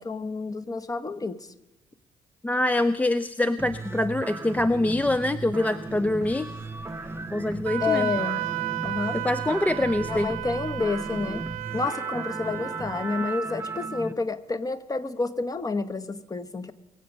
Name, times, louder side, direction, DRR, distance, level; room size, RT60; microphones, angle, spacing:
voice 1, 0.0-1.5 7.8-8.4 8.8-9.2 10.1-11.4 11.7-16.7, left 4 dB, 25° left, 11 dB, 1.0 m, -29 dB
voice 2, 2.4-6.5 7.3-8.1 9.1-10.3, left 1 dB, 10° left, 14 dB, 0.4 m, -25 dB
sound 1, 3.6-14.1, right 3 dB, 15° right, 0.7 m, -36 dB
Bus / Engine starting, 4.8-11.5, left 3 dB, 50° left, 6.9 m, -52 dB
Wind instrument woodwind instrument, 7.7-13.4, right 18 dB, 70° right, 0.5 m, -33 dB
23.0 x 7.8 x 5.3 m, 1.0 s
figure-of-eight pair, 45°, 14 cm